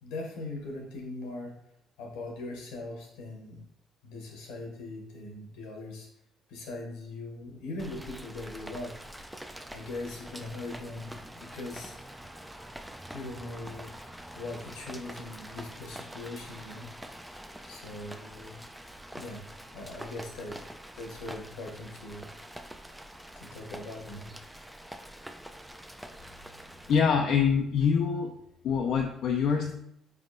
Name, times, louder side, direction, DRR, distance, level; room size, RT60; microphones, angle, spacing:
voice 1, 0.0-1.5 2.0-3.6 4.0-6.1 6.5-8.9 9.7-12.0 13.1-13.9 14.3-16.9 17.6-18.6 19.1-19.5 19.7-20.6 21.0-22.3 23.3-24.3, left 2 dB, 90° left, 0 dB, 1.0 m, -40 dB
Rain, 7.8-27.0, right 1 dB, 5° right, 0.4 m, -45 dB
voice 2, 26.9-28.3 28.6-29.7, left 6 dB, 70° left, 2 dB, 0.4 m, -25 dB
4.1 x 3.5 x 2.5 m, 0.75 s
supercardioid pair, 70°, 0 cm